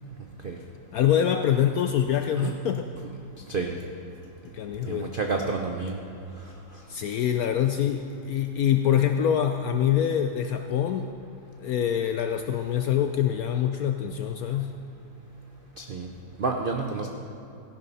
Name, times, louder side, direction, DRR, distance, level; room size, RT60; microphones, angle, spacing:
voice 1, 0.9-2.9 4.5-5.1 6.9-11.1 11.6-14.7, left 9 dB, 75° left, 6 dB, 0.8 m, -25 dB
voice 2, 4.9-6.0 15.8-16.1 16.4-17.1, right 4 dB, 75° right, 2 dB, 0.5 m, -29 dB
14.5 x 11.0 x 4.1 m, 2.8 s
omnidirectional pair, 2.0 m